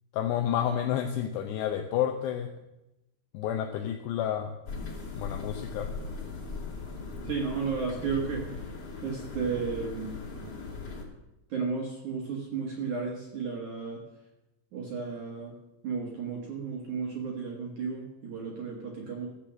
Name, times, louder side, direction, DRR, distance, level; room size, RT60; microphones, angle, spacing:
voice 1, 0.1-2.5 3.3-4.5 5.2-5.9, left 10 dB, 90° left, 5 dB, 2.4 m, -30 dB
sound 1, 4.7-11.0, left 4 dB, 40° left, 2.9 m, -39 dB
voice 2, 7.2-8.5 9.0-10.3 11.5-14.0 14.7-15.6 15.8-19.3, right 5 dB, 60° right, -1 dB, 2.2 m, -33 dB
15.5 x 7.6 x 7.5 m, 0.93 s
omnidirectional pair, 5.8 m